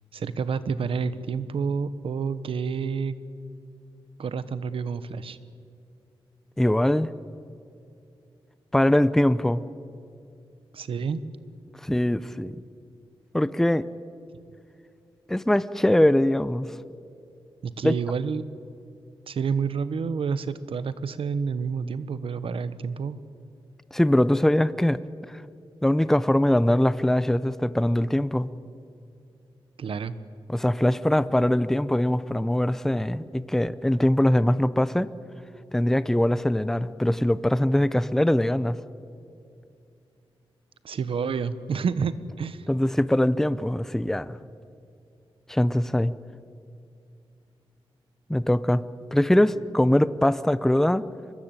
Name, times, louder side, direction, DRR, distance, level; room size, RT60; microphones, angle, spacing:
voice 1, 0.1-3.2 4.2-5.4 10.7-11.2 17.6-18.4 19.3-23.2 29.8-30.1 40.8-42.7, right 5 dB, 75° right, 14 dB, 1.1 m, -29 dB
voice 2, 6.6-7.1 8.7-9.6 11.8-12.6 13.3-13.9 15.3-16.7 17.8-17.9 23.9-25.0 25.8-28.5 30.5-35.1 35.7-38.8 42.7-44.4 45.5-46.1 48.3-48.8 49.1-51.0, left 1 dB, 5° left, 15 dB, 0.6 m, -22 dB
24.0 x 21.0 x 9.0 m, 2.5 s
wide cardioid pair, 115°, 9 cm